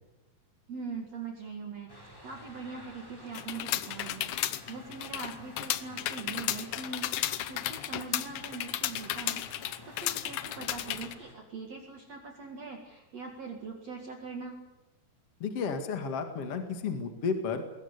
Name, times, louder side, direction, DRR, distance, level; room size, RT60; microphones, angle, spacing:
voice 1, 0.7-14.6, right 4 dB, 45° right, 2 dB, 2.8 m, -42 dB
sound 1, 1.9-11.3, equal, 5° left, 4.2 m, -51 dB
sound 2, 3.3-11.1, left 13 dB, 75° left, 1.9 m, -34 dB
voice 2, 15.4-17.6, left 5 dB, 45° left, 6 dB, 2.5 m, -32 dB
21.5 x 18.5 x 8.4 m, 1.0 s
omnidirectional pair, 4.5 m